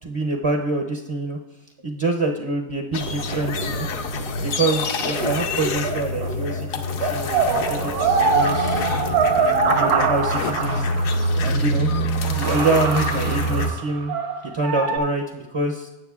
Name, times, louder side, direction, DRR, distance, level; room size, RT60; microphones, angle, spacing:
voice 1, 0.0-1.4 1.8-3.9 4.4-8.9 9.3-10.9 11.4-11.9 12.3-14.1 14.5-15.9, right 2 dB, 45° right, 2 dB, 0.4 m, -26 dB
sound 1, 2.9-13.7, left 1 dB, 65° left, 1.1 m, -26 dB
sound 2, 3.0-6.6 6.9-11.4 11.9-12.0 12.2-15.0, right 5 dB, 80° right, 1.3 m, -24 dB
16.5 x 7.0 x 2.4 m, 0.99 s
omnidirectional pair, 1.6 m